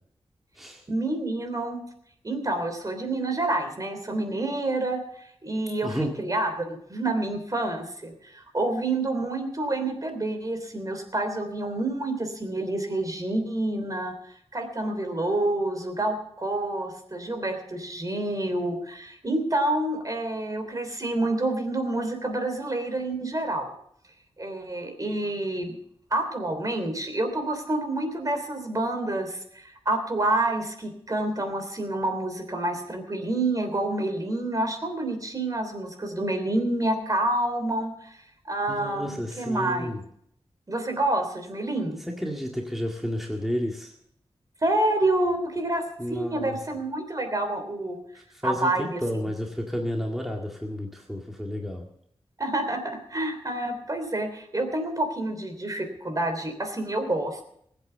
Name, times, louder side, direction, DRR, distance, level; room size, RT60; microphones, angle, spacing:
voice 1, 0.9-1.8 2.2-23.7 24.4-25.8 26.1-39.9 40.7-42.0 44.6-45.8 46.1-48.0 48.4-49.3 52.4-57.4, right 2 dB, 35° right, 5 dB, 3.2 m, -28 dB
voice 2, 5.8-6.1 38.7-40.0 42.1-43.9 46.0-46.6 48.2-51.9, equal, ahead, 0 dB, 2.0 m, -31 dB
20.0 x 8.3 x 6.8 m, 0.69 s
wide cardioid pair, 95°, 10 cm